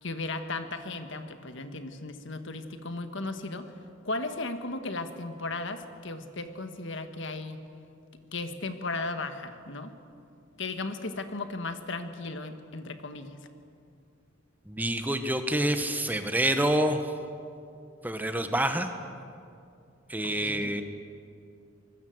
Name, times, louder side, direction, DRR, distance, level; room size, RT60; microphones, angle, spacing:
voice 1, 0.0-3.7 4.0-7.6 8.3-9.9 10.6-13.4 20.2-20.7, left 3 dB, 60° left, 8 dB, 1.6 m, -36 dB
voice 2, 14.7-17.1 18.0-18.9 20.1-20.8, right 1 dB, 10° right, 7 dB, 1.2 m, -27 dB
25.5 x 21.0 x 8.0 m, 2.5 s
head